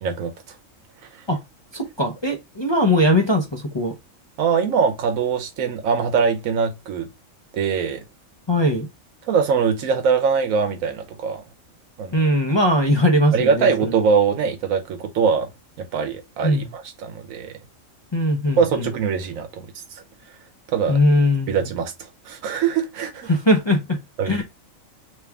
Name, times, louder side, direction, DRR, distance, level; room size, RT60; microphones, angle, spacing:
voice 1, 0.0-0.6 4.4-7.1 7.5-8.0 9.3-11.4 12.0-12.3 13.3-15.5 15.8-17.5 18.6-20.0 20.7-21.0 21.5-23.3 24.2-24.4, right 6 dB, 85° right, 1.1 m, -22 dB
voice 2, 1.7-3.9 8.5-8.9 12.1-13.9 16.4-16.7 18.1-18.9 20.9-21.7 23.3-24.0 24.2-24.4, left 1 dB, 35° left, 0.4 m, -20 dB
3.5 x 3.0 x 3.4 m
omnidirectional pair, 1.4 m